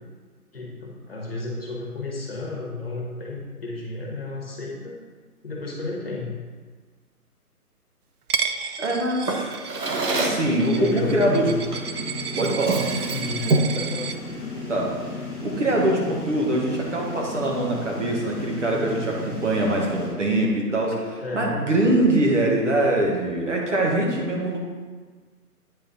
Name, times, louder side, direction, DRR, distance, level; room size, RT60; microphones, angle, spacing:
voice 1, 0.5-5.0 5.4-6.3 10.7-11.6 13.1-13.4 13.7-14.1 21.2-21.7, left 3 dB, 40° left, -3 dB, 1.2 m, -32 dB
Coin (dropping), 8.3-14.2, right 6 dB, 70° right, 0.6 m, -32 dB
voice 2, 8.8-9.6 10.1-11.4 12.4-12.8 14.7-14.9 15.4-21.0 21.3-24.6, right 1 dB, 50° right, -1 dB, 1.3 m, -23 dB
Drawer open or close, 9.3-10.5 11.7-11.9 12.4-13.8, right 3 dB, 85° right, 1.2 m, -26 dB
sound 1, 10.1-20.1, left 2 dB, 5° left, 2.0 m, -35 dB
8.7 x 4.1 x 4.0 m, 1.5 s
hypercardioid pair, 180°, 46 cm